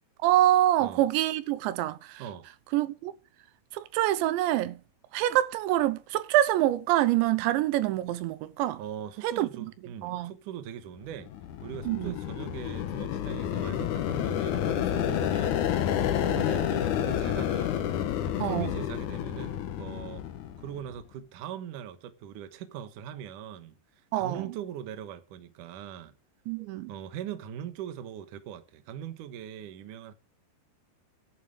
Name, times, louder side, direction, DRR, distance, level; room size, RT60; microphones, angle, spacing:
voice 1, 0.2-2.2 2.7-3.1 3.7-4.8 5.1-8.8 9.2-9.7 10.0-10.3 11.9-12.1 18.4-18.7 24.1-24.4 26.5-26.9, right 14 dB, 85° right, 3.1 m, -26 dB
voice 2, 8.8-11.3 11.6-17.9 18.4-20.2 20.6-23.7 24.1-26.1 26.9-30.1, right 10 dB, 65° right, 2.2 m, -41 dB
sound 1, 11.1-20.9, left 10 dB, 75° left, 1.8 m, -30 dB
11.0 x 6.9 x 8.9 m
omnidirectional pair, 5.1 m